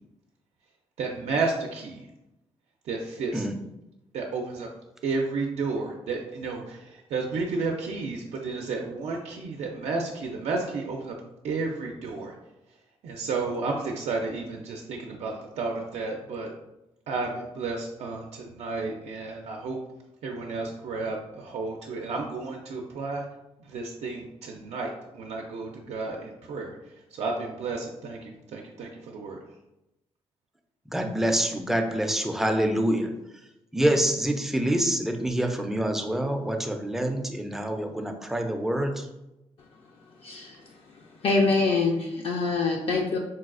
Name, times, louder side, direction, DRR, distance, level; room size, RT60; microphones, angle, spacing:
voice 1, 1.0-2.1 2.9-3.4 4.1-4.7 5.0-11.1 11.4-12.3 13.0-16.5 17.1-19.8 20.2-23.2 23.6-26.8 27.1-29.4, right 3 dB, 80° right, 0 dB, 0.4 m, -32 dB
voice 2, 30.9-33.1 33.7-39.0, right 1 dB, 5° right, 4 dB, 0.3 m, -26 dB
voice 3, 40.2-40.6 41.2-43.2, left 3 dB, 60° left, 0 dB, 0.4 m, -24 dB
4.0 x 2.3 x 2.4 m, 0.92 s
cardioid pair, 120°, 11 cm